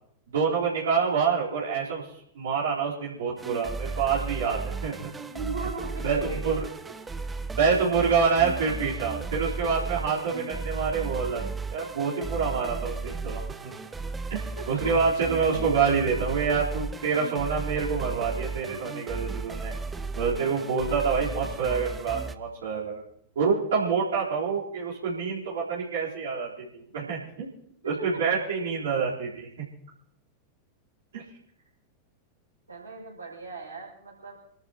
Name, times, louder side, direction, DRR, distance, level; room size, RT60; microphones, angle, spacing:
voice 1, 0.3-2.1 2.3-5.1 6.0-6.7 7.6-13.7 14.3-19.8 20.1-23.0 23.4-27.5 27.8-29.6 31.1-31.2, right 5 dB, 60° right, -7 dB, 4.0 m, -27 dB
sound 1, 3.4-22.4, right 3 dB, 15° right, 0.8 m, -35 dB
voice 2, 5.2-6.4 14.6-14.7 27.8-27.9 32.7-34.4, right 3 dB, 80° right, -8 dB, 6.1 m, -38 dB
29.0 x 13.0 x 3.0 m, 0.72 s
figure-of-eight pair, 90°, 0 cm